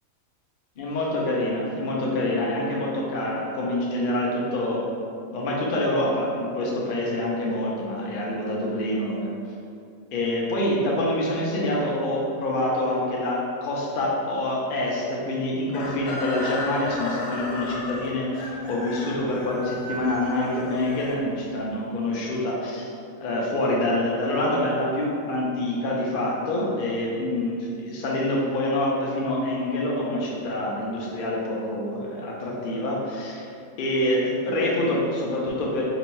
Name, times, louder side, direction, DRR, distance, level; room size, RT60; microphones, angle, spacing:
voice 1, 0.8-4.8 5.3-9.3 10.1-22.8 23.2-33.5 33.8-35.8, left 1 dB, 60° left, -4 dB, 0.5 m, -26 dB
Chicken rooster, 15.7-21.7, left 2 dB, 80° left, 1.0 m, -34 dB
3.0 x 2.7 x 4.4 m, 2.5 s
omnidirectional pair, 1.5 m